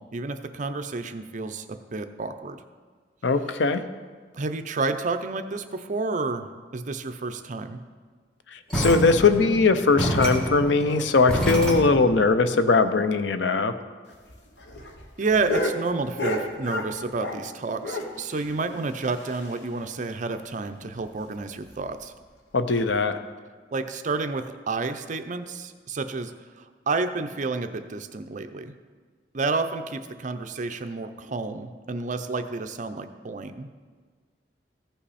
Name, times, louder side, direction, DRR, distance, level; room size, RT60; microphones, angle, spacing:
voice 1, 0.0-2.6 4.3-7.8 15.2-22.1 23.7-28.7 29.3-33.7, right 3 dB, 45° right, 8 dB, 0.6 m, -30 dB
voice 2, 3.2-3.8 8.5-13.7 22.5-23.2, left 4 dB, 90° left, 10 dB, 0.6 m, -20 dB
sound 1, 8.7-12.2, equal, 5° left, 1.5 m, -28 dB
sound 2, 14.1-17.5 17.8-19.8 20.1-20.2 20.5-20.6 21.0-21.1 21.7-21.9 22.8-22.9, left 1 dB, 70° left, 1.1 m, -32 dB
15.0 x 5.7 x 4.2 m, 1.5 s
head